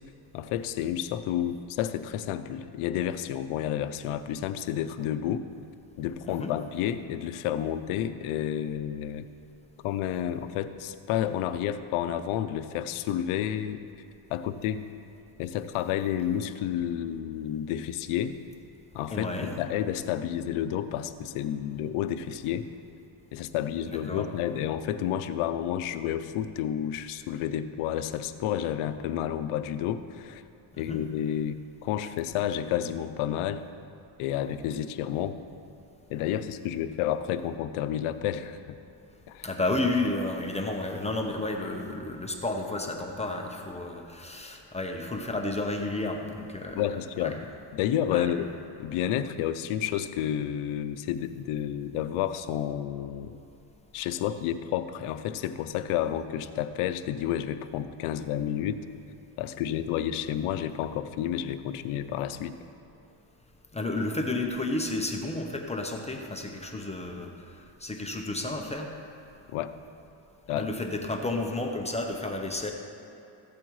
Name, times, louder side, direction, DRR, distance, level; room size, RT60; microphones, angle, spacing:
voice 1, 0.3-5.4 6.0-9.3 9.8-13.8 14.3-14.8 15.4-18.4 18.9-22.7 23.3-30.4 30.8-33.6 34.2-35.4 36.1-38.8 39.3-39.5 46.8-47.4 47.7-48.5 48.8-53.3 53.9-58.8 59.4-62.6 69.5-69.7 70.5-70.7, left 10 dB, 85° left, 11 dB, 0.7 m, -30 dB
voice 2, 19.1-19.6 23.9-24.3 30.8-31.0 39.4-46.8 47.2-47.3 48.1-48.3 63.7-67.3 67.8-68.9 70.5-72.7, left 2 dB, 15° left, 2 dB, 0.8 m, -31 dB
15.0 x 8.4 x 3.1 m, 2.8 s
cardioid pair, 110°, 49 cm